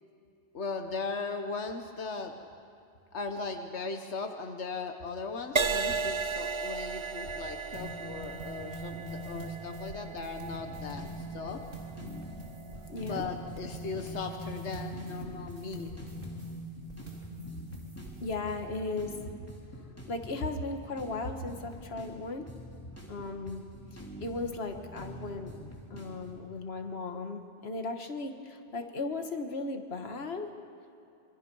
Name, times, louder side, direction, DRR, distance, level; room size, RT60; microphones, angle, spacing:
voice 1, 0.5-2.3 3.1-11.6 13.0-15.9, left 4 dB, 90° left, 5 dB, 1.5 m, -38 dB
Crash cymbal, 5.6-13.2 13.9-14.2, right 4 dB, 35° right, 0.5 m, -35 dB
sound 1, 7.7-18.4, equal, 55° right, 3.2 m, -43 dB
sound 2, 10.5-26.4, equal, 15° left, 3.4 m, -47 dB
voice 2, 12.9-13.2 18.2-19.1 20.1-22.5 23.1-23.6 23.9-25.6 25.9-30.5, left 3 dB, 65° left, 5 dB, 1.7 m, -36 dB
26.5 x 23.5 x 5.5 m, 2.6 s
omnidirectional pair, 1.1 m